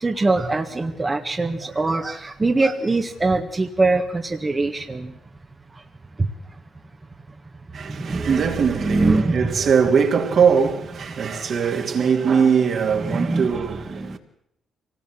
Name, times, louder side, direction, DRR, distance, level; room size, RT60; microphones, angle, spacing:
voice 1, 0.0-5.1 8.0-9.5 13.0-14.2, right 3 dB, 20° right, 1.6 m, -23 dB
voice 2, 7.7-14.2, right 6 dB, 55° right, 2.9 m, -21 dB
24.5 x 18.5 x 7.8 m
cardioid pair, 90°, 0 cm